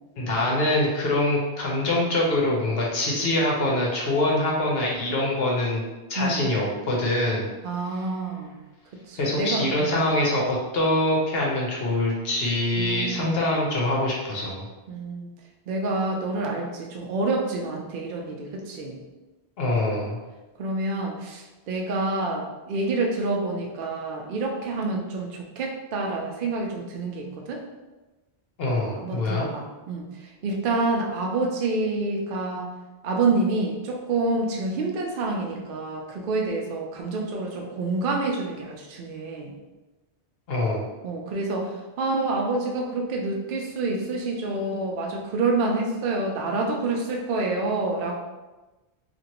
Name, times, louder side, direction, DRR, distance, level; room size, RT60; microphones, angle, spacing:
voice 1, 0.2-5.8 6.1-7.5 9.2-14.7 19.6-20.2 28.6-29.5 40.5-40.8, left 1 dB, 65° left, -3 dB, 0.9 m, -24 dB
voice 2, 7.6-8.6 9.1-10.1 12.7-13.5 14.9-15.3 15.7-19.0 20.6-27.6 28.8-32.7 33.0-39.5 41.0-48.2, right 3 dB, 60° right, 0 dB, 0.6 m, -28 dB
2.9 x 2.5 x 2.8 m, 1.1 s
omnidirectional pair, 1.1 m